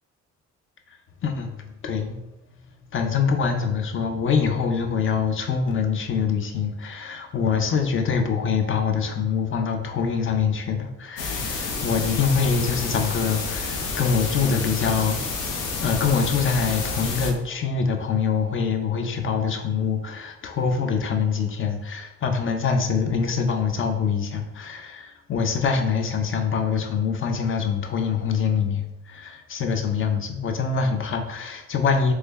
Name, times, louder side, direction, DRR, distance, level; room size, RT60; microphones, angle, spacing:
voice 1, 1.2-2.2 2.9-15.2 15.8-32.1, left 6 dB, 45° left, 5 dB, 0.5 m, -24 dB
sound 1, 11.2-17.3, left 4 dB, 85° left, 0.7 m, -29 dB
3.2 x 2.2 x 3.3 m, 0.93 s
cardioid pair, 90°, 30 cm